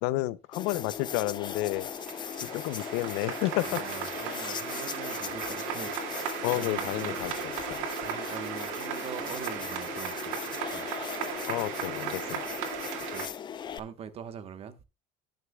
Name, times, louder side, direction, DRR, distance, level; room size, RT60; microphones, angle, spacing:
voice 1, 0.0-1.9 2.4-3.8 6.4-7.3 7.7-7.8 11.5-12.4, left 18 dB, 80° left, 0.6 m, -31 dB
sound 1, 0.5-13.8, left 8 dB, 25° left, 0.6 m, -38 dB
sound 2, 1.1-1.2 1.5-13.3, right 8 dB, 90° right, 2.3 m, -37 dB
voice 2, 3.6-7.2 8.0-10.4 10.7-10.9 13.1-13.3 13.7-14.8, right 8 dB, 35° right, 1.1 m, -43 dB
18.5 x 6.6 x 2.3 m
cardioid pair, 145°, 17 cm